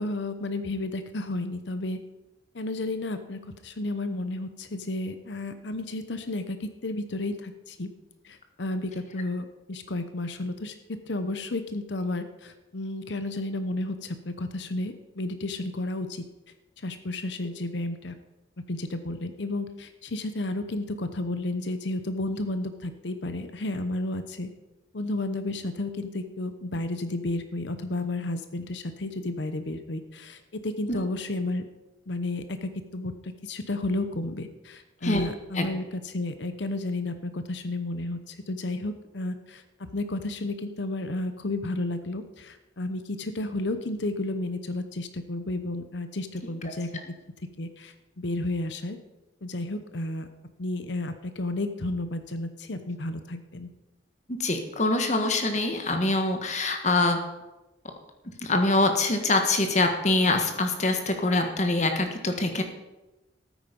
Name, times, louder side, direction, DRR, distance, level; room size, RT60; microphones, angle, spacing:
voice 1, 0.0-2.0 2.5-7.9 8.2-10.7 11.1-16.2 16.8-18.1 18.7-24.5 24.9-31.6 32.1-39.6 39.9-46.9 47.6-49.0 49.4-50.3 50.6-53.7, left 2 dB, 75° left, 10 dB, 0.9 m, -32 dB
voice 2, 54.4-57.2 58.4-62.6, left 2 dB, 40° left, 5 dB, 1.5 m, -24 dB
13.0 x 9.2 x 5.3 m, 1.0 s
head